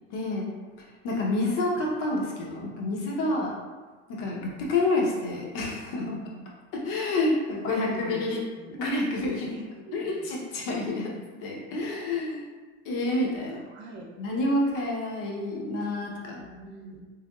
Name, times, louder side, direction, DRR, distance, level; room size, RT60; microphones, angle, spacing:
voice 1, 0.1-0.5 1.0-3.6 4.1-6.2 6.8-8.4 8.7-9.5 9.9-12.4 12.8-13.6 14.2-16.4, left 2 dB, 65° left, -2 dB, 1.0 m, -28 dB
voice 2, 6.0-6.5 7.0-7.1 7.7-8.8 9.4-10.3 13.4-14.1 16.4-17.0, right 2 dB, 35° right, -1 dB, 0.7 m, -42 dB
3.5 x 3.4 x 2.3 m, 1.4 s
supercardioid pair, 105°, 34 cm